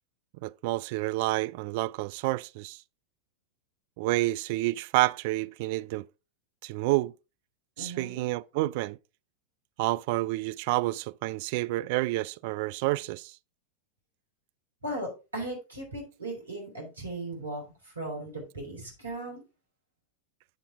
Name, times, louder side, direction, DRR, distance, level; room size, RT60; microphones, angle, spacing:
voice 1, 0.4-2.8 4.0-6.1 6.6-7.1 7.8-9.0 9.8-13.4, right 19 dB, 50° right, 0.4 m, -29 dB
voice 2, 7.8-8.3 14.8-19.4, right 1 dB, 80° right, 4.1 m, -37 dB
8.6 x 7.1 x 3.6 m
figure-of-eight pair, 90°, 0 cm